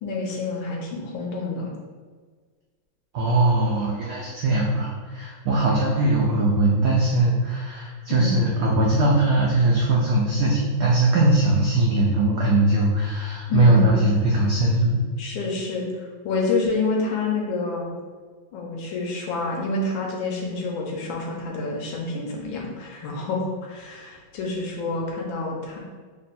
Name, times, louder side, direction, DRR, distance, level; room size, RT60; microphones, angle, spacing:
voice 1, 0.0-1.7 8.1-8.4 13.5-14.1 15.2-17.9 18.5-25.8, left 3 dB, 75° left, -1 dB, 1.4 m, -28 dB
voice 2, 3.1-15.0, right 2 dB, 80° right, -3 dB, 0.8 m, -20 dB
3.5 x 2.2 x 4.0 m, 1.5 s
omnidirectional pair, 2.3 m